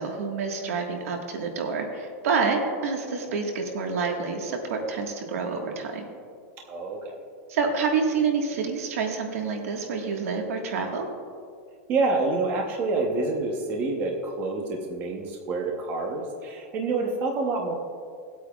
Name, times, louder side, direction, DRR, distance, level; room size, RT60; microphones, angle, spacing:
voice 1, 0.0-6.0 7.5-11.1, right 5 dB, 80° right, 2 dB, 1.5 m, -28 dB
voice 2, 6.7-7.2 11.9-17.7, right 3 dB, 25° right, 1 dB, 0.8 m, -27 dB
18.0 x 8.4 x 2.3 m, 2.2 s
supercardioid pair, 175°, 8 cm